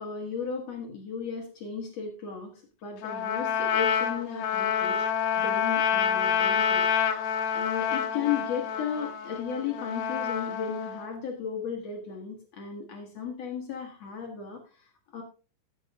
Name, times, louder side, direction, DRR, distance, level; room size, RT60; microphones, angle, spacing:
voice 1, 0.0-15.2, left 6 dB, 90° left, 1 dB, 1.4 m, -35 dB
Trumpet, 3.0-11.1, left 8 dB, 65° left, 2.7 m, -28 dB
13.5 x 8.3 x 3.5 m, 0.36 s
omnidirectional pair, 5.8 m